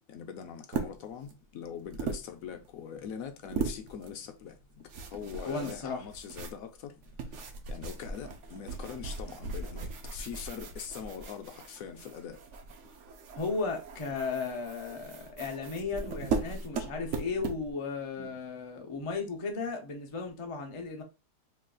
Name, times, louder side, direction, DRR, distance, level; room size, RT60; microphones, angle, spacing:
voice 1, 0.1-7.3 7.7-12.4 18.2-18.4, left 7 dB, 70° left, 0.9 m, -43 dB
sound 1, 0.7-1.3 1.8-2.7 3.4-4.1 4.4-17.7, right 5 dB, 60° right, 0.8 m, -38 dB
voice 2, 5.4-6.0 13.4-21.0, left 4 dB, 50° left, 0.3 m, -35 dB
3.1 x 2.3 x 3.7 m
omnidirectional pair, 1.7 m